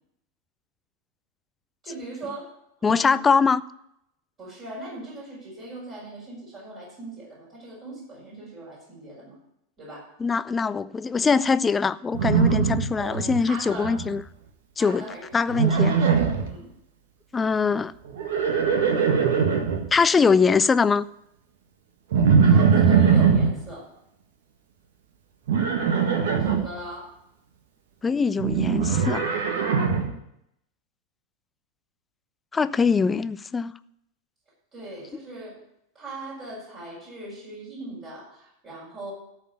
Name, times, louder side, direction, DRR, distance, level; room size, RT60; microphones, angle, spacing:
voice 1, 1.8-2.5 2.8-3.2 4.4-9.4 9.8-10.1 13.0-14.0 14.8-15.6 15.9-16.1 16.5-16.7 22.4-23.9 26.4-27.2 34.7-35.6 35.9-39.1, right 1 dB, 30° right, 5.7 m, -39 dB
voice 2, 2.8-3.6 10.2-14.2 14.8-15.1 15.3-15.9 17.3-17.9 19.9-21.0 28.0-29.2 32.5-33.7, left 5 dB, 15° left, 0.4 m, -22 dB
Livestock farm animals working animals, 12.1-13.4 13.7-14.2 15.5-16.5 18.1-19.8 22.1-23.5 25.5-26.6 28.4-30.1, right 6 dB, 55° right, 1.6 m, -21 dB
13.5 x 4.9 x 8.5 m
figure-of-eight pair, 90°, 0 cm